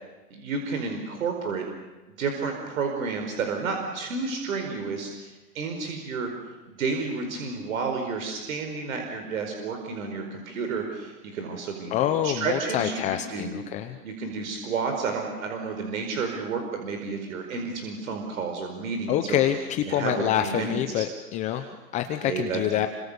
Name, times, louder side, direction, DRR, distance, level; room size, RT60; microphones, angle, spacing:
voice 1, 0.3-1.6 2.2-6.3 6.7-13.5 14.0-19.4 19.9-21.0 21.5-21.7 22.2-22.6, right 4 dB, 60° right, 4 dB, 5.0 m, -31 dB
voice 2, 11.9-14.0 19.1-22.9, left 11 dB, 15° left, 8 dB, 0.8 m, -26 dB
29.0 x 25.5 x 7.0 m, 1.1 s
hypercardioid pair, 145°, 47 cm